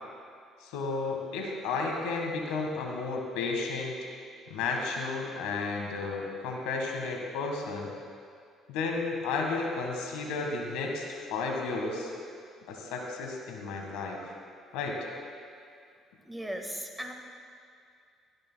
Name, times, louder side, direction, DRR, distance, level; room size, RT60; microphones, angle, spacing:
voice 1, 0.6-4.0 4.5-7.9 8.7-12.1 12.7-14.2 14.7-15.1, left 3 dB, 85° left, 1 dB, 1.6 m, -33 dB
voice 2, 16.2-17.1, equal, 5° right, 2 dB, 1.6 m, -37 dB
18.0 x 13.5 x 2.3 m, 2.3 s
supercardioid pair, 85°, 0 cm